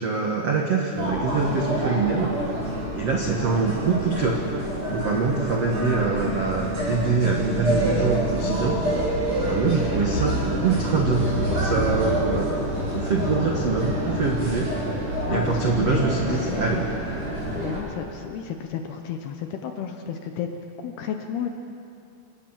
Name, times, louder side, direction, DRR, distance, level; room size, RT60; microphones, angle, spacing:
voice 1, 0.0-2.4 2.9-4.4 4.9-8.8 9.5-12.5 12.9-14.7 15.3-16.8, right 4 dB, 70° right, 0 dB, 1.5 m, -24 dB
sound 1, 0.9-17.8, equal, 30° right, 8.7 m, -27 dB
voice 2, 15.3-16.9 17.2-20.5 20.8-21.5, left 8 dB, 70° left, 5 dB, 2.6 m, -32 dB
27.5 x 19.0 x 7.6 m, 2.6 s
omnidirectional pair, 5.7 m